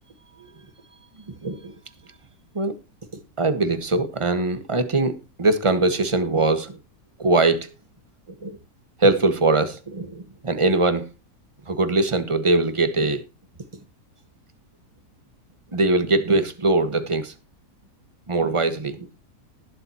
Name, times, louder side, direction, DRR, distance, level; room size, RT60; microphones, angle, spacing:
voice 1, 1.4-1.7 2.5-2.7 3.4-6.8 7.2-7.7 8.4-8.6 9.0-11.1 11.7-13.2 15.7-17.3 18.3-19.1, right 2 dB, 20° right, 1.3 m, -21 dB
20.0 x 7.4 x 2.9 m
omnidirectional pair, 1.7 m